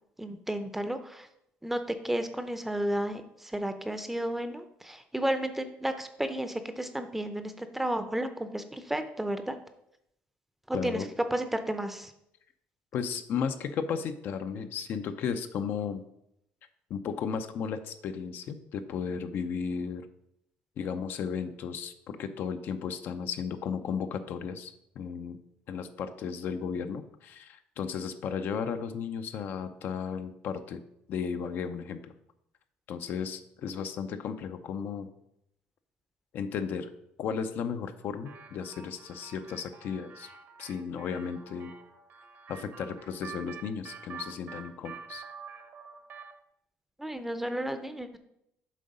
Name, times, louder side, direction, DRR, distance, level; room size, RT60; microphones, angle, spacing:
voice 1, 0.2-1.3 1.6-9.5 10.7-11.0 11.3-12.1 47.0-48.2, right 1 dB, 5° right, 9 dB, 0.6 m, -32 dB
voice 2, 10.7-11.1 12.9-16.0 16.9-20.1 20.8-25.4 25.7-30.8 31.1-32.1 32.9-35.1 36.3-36.9 37.2-40.3 40.6-41.7 42.5-45.2, left 6 dB, 60° left, 9 dB, 0.6 m, -34 dB
sound 1, 38.2-46.4, right 6 dB, 55° right, 0.9 m, -47 dB
7.4 x 3.8 x 5.3 m, 0.78 s
cardioid pair, 125°, 4 cm